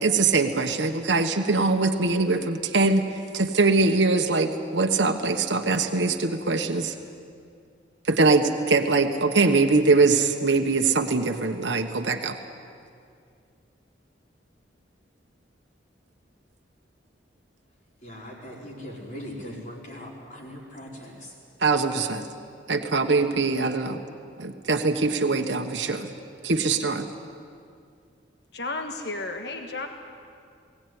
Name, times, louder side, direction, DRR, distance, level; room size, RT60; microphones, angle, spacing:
voice 1, 0.0-3.0 3.3-6.9 8.1-12.4 21.6-22.2 22.7-24.0 24.4-26.1 26.4-27.1, right 3 dB, 70° right, 4 dB, 1.2 m, -22 dB
voice 2, 18.0-21.3, equal, 40° left, -4 dB, 5.0 m, -40 dB
voice 3, 28.5-29.9, left 2 dB, 60° left, 4 dB, 1.4 m, -32 dB
21.5 x 17.5 x 9.6 m, 2.3 s
head